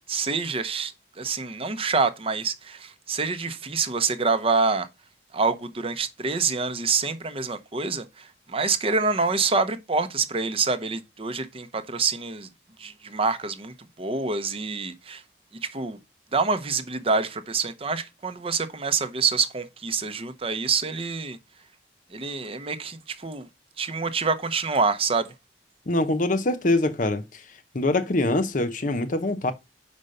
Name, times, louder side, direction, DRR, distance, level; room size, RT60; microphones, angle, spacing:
voice 1, 0.1-4.9 5.3-12.5 12.8-15.2 15.6-16.0 16.3-21.4 22.1-23.5 23.8-25.3, right 4 dB, 30° right, 0.7 m, -26 dB
voice 2, 25.9-27.4 27.7-29.5, left 2 dB, 45° left, 0.8 m, -24 dB
5.5 x 5.2 x 6.4 m
head